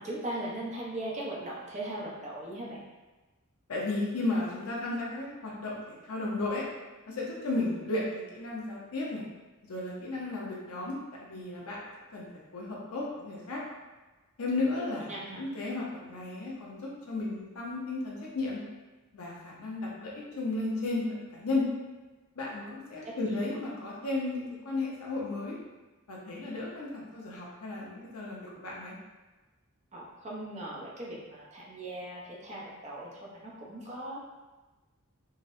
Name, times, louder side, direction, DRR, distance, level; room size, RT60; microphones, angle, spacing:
voice 1, 0.0-2.8 14.8-15.5 22.5-22.6 23.2-23.4 29.9-34.2, right 1 dB, 35° right, -5 dB, 0.7 m, -39 dB
voice 2, 3.7-6.6 7.1-9.3 9.7-11.8 12.1-13.6 14.4-18.6 19.1-21.7 22.3-25.6 26.1-29.0, left 2 dB, 85° left, -4 dB, 0.6 m, -34 dB
3.8 x 2.0 x 2.5 m, 1.2 s
head